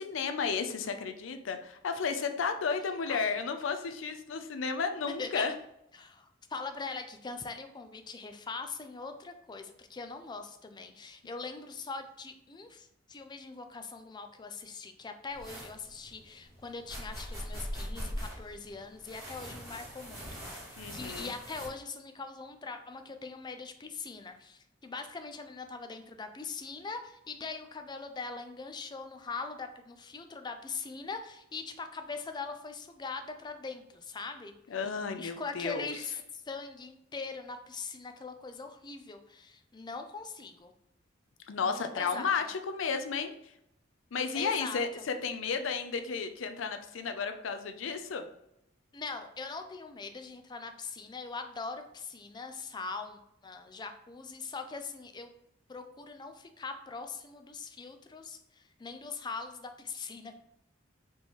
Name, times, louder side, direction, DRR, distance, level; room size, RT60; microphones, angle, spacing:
voice 1, 0.0-5.5 20.8-21.3 34.7-35.9 41.5-43.3 44.1-48.3, left 5 dB, 85° left, 8 dB, 0.5 m, -33 dB
voice 2, 3.1-3.4 5.1-5.5 5.9-20.6 20.9-34.5 35.2-40.7 41.6-42.3 44.3-44.8 48.9-55.3 55.7-60.3, left 4 dB, 25° left, 7 dB, 0.4 m, -42 dB
sound 1, 15.3-21.7, equal, 15° right, 1.5 m, -42 dB
4.2 x 3.0 x 3.5 m, 0.79 s
head